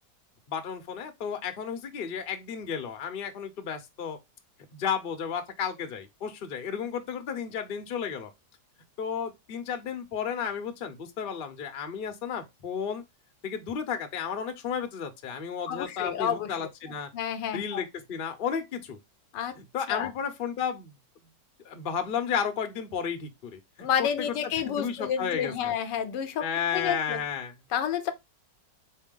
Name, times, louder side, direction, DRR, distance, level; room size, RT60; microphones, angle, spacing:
voice 1, 0.5-4.2 4.7-8.3 9.0-13.0 13.4-17.1 17.5-19.0 19.5-20.9 21.6-25.7 26.4-27.5, left 7 dB, 45° left, 0.7 m, -33 dB
voice 2, 15.7-16.5 17.1-17.8 19.3-19.6 19.9-20.1 23.8-26.5 26.7-27.2 27.7-28.1, left 8 dB, 80° left, 1.3 m, -30 dB
4.2 x 3.3 x 3.7 m
omnidirectional pair, 1.9 m